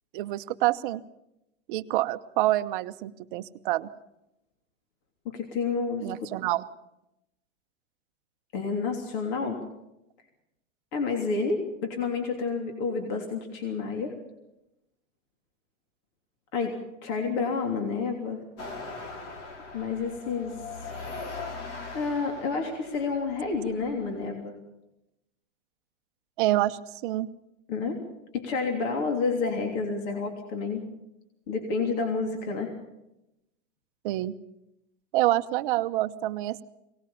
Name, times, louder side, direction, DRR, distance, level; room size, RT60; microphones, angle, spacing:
voice 1, 0.1-1.0 1.7-3.9 6.0-6.7 26.4-27.3 34.0-34.3 35.1-36.6, right 16 dB, 45° right, 10 dB, 0.9 m, -27 dB
voice 2, 5.2-6.3 8.5-9.6 10.9-14.1 16.5-18.4 19.7-20.6 20.8-20.9 21.9-24.5 27.7-28.0 28.3-30.8 31.5-32.7, left 4 dB, 40° left, 3 dB, 3.1 m, -29 dB
sound 1, 18.6-24.3, left 3 dB, 65° left, 4.8 m, -40 dB
22.5 x 19.0 x 7.1 m, 0.88 s
supercardioid pair, 160°, 37 cm